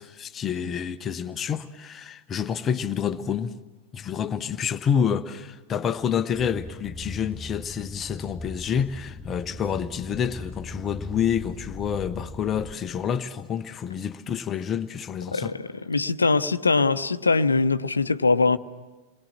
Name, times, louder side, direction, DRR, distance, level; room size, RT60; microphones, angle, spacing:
voice 1, 0.0-3.5 3.9-15.5, left 8 dB, 25° left, 0.8 m, -28 dB
sound 1, 6.3-12.7, left 2 dB, ahead, 4.1 m, -40 dB
voice 2, 15.3-18.6, left 3 dB, 80° left, 0.7 m, -22 dB
28.5 x 21.5 x 7.4 m
figure-of-eight pair, 90°, 0 cm